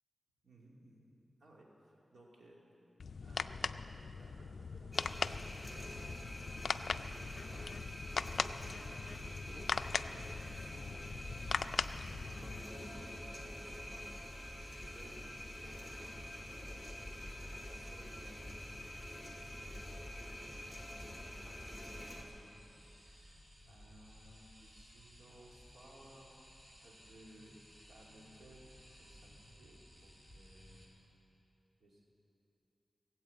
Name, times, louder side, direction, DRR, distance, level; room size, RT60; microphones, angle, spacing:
voice 1, 0.4-1.1 1.4-2.6 3.2-6.1 6.4-7.7 8.3-9.7 10.0-11.5 11.8-18.5 18.9-22.7 23.0-26.4 26.8-27.5 27.9-31.0 31.8-32.1, right 1 dB, 75° right, -3 dB, 2.7 m, -60 dB
sound 1, 3.0-12.6, left 5 dB, 65° left, 0.3 m, -40 dB
sound 2, 4.9-22.2, left 1 dB, 5° right, 2.2 m, -46 dB
sound 3, 22.0-30.9, equal, 20° right, 3.1 m, -59 dB
18.5 x 8.0 x 8.5 m, 2.9 s
wide cardioid pair, 120°, 0 cm